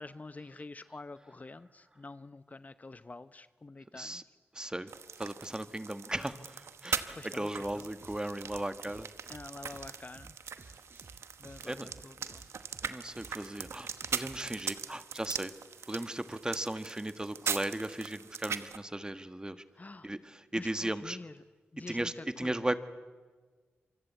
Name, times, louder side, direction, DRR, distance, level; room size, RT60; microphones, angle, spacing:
voice 1, 0.0-4.2 4.6-4.7 7.1-7.9 9.3-10.3 11.4-12.4 14.0-14.1 19.8-20.1 20.5-21.4 21.7-22.7, left 3 dB, 35° left, 13 dB, 0.8 m, -47 dB
voice 2, 4.5-4.9 5.2-9.1 11.7-11.9 12.8-15.5 15.9-19.6 20.0-21.2 21.9-22.8, right 1 dB, 20° right, 10 dB, 1.5 m, -36 dB
sound 1, 4.9-18.8, right 6 dB, 90° right, 1.0 m, -40 dB
sound 2, 7.6-14.4, right 3 dB, 60° right, 4.6 m, -55 dB
27.0 x 24.0 x 8.3 m, 1.4 s
cardioid pair, 55°, 4 cm